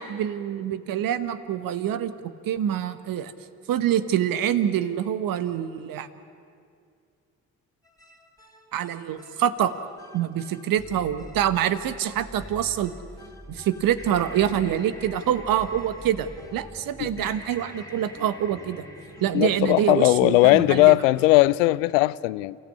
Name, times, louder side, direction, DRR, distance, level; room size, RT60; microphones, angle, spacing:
voice 1, 0.0-3.3 3.7-6.1 8.7-9.8 10.1-12.9 13.5-18.8 19.2-21.0, right 10 dB, 60° right, 1.3 m, -26 dB
sound 1, 7.8-21.6, equal, 10° left, 3.0 m, -45 dB
voice 2, 19.3-22.6, left 19 dB, 80° left, 0.5 m, -19 dB
29.0 x 15.0 x 8.6 m
hypercardioid pair, 45°, 38 cm